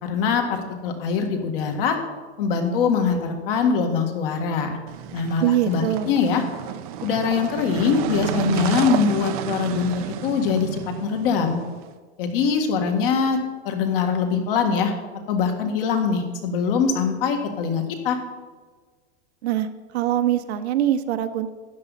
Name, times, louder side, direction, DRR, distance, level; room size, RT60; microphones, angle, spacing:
voice 1, 0.0-2.0 2.4-4.8 5.1-6.4 7.0-11.6 12.2-13.4 13.7-14.9 15.3-18.2, left 5 dB, 50° left, 4 dB, 1.9 m, -23 dB
sound 1, 4.9-11.9, right 10 dB, 35° right, 0.6 m, -31 dB
voice 2, 5.4-6.2 19.4-19.7 19.9-21.5, right 11 dB, 65° right, 9 dB, 0.9 m, -23 dB
12.5 x 9.5 x 4.1 m, 1.4 s
supercardioid pair, 165°, 35 cm